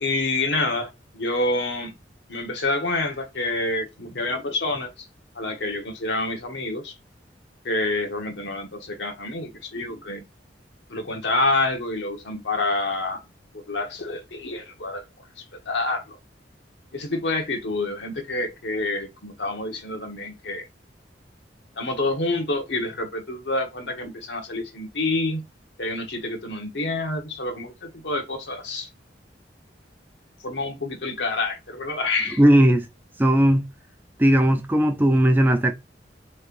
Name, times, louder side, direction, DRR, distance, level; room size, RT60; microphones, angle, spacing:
voice 1, 0.0-1.9 2.3-5.1 5.3-7.0 7.6-10.2 10.9-13.2 13.7-15.0 15.4-16.2 16.9-20.7 21.8-25.4 25.8-28.9 30.4-32.4, left 2 dB, 80° left, 1.1 m, -27 dB
voice 2, 32.4-32.8 33.2-33.7 34.2-35.7, right 1 dB, 10° right, 0.4 m, -17 dB
3.3 x 3.1 x 2.5 m
head